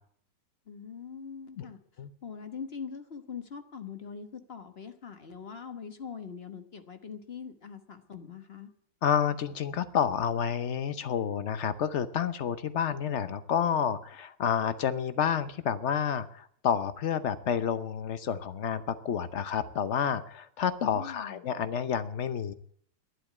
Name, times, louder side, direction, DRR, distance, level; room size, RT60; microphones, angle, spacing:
voice 1, 0.7-1.8 2.2-8.7 20.9-21.4, left 6 dB, 35° left, 8 dB, 1.1 m, -42 dB
voice 2, 9.0-22.5, left 8 dB, 70° left, 12 dB, 0.6 m, -29 dB
11.5 x 11.5 x 8.4 m, 0.62 s
omnidirectional pair, 2.3 m